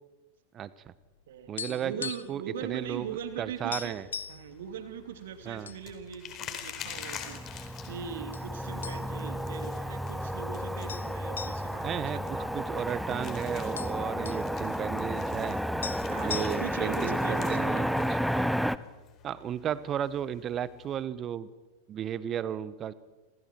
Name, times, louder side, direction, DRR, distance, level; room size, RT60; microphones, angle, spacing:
voice 1, 0.5-0.9 1.5-4.1 5.4-5.7 11.8-15.6 16.2-18.5 19.2-21.5 21.9-22.9, right 9 dB, 30° right, 18 dB, 1.2 m, -34 dB
sound 1, 1.0-2.5 2.7-2.9 3.3-3.4 3.7-4.5 5.1-5.8 6.2-6.3 7.0-7.6 8.3-8.5 8.8-9.4 9.7-9.8 10.9-12.9 13.2-13.3 13.5-14.5 15.5-15.6 15.8-16.9, left 6 dB, 70° left, 1.1 m, -39 dB
voice 2, 1.3-4.0 4.3-12.7 16.1-17.9, right 7 dB, 60° right, 7 dB, 3.1 m, -41 dB
sound 2, 2.6-21.0, left 9 dB, 30° left, 4.4 m, -48 dB
Motor vehicle (road), 6.8-18.8, equal, ahead, 0.9 m, -32 dB
29.0 x 27.5 x 4.7 m, 1.2 s
figure-of-eight pair, 90°, 0 cm